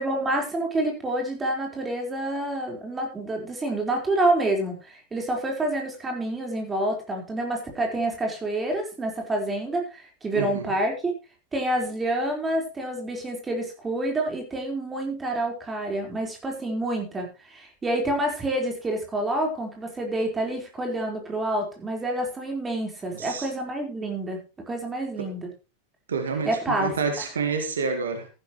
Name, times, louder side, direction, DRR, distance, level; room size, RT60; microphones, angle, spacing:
voice 1, 0.0-11.1 11.5-24.4 24.7-25.5 26.4-27.3, right 1 dB, 15° right, 4.4 m, -28 dB
voice 2, 10.3-10.7 23.1-23.5 25.2-25.3 26.1-28.3, right 5 dB, 65° right, 1.8 m, -28 dB
14.5 x 11.5 x 3.1 m
figure-of-eight pair, 90°, 0 cm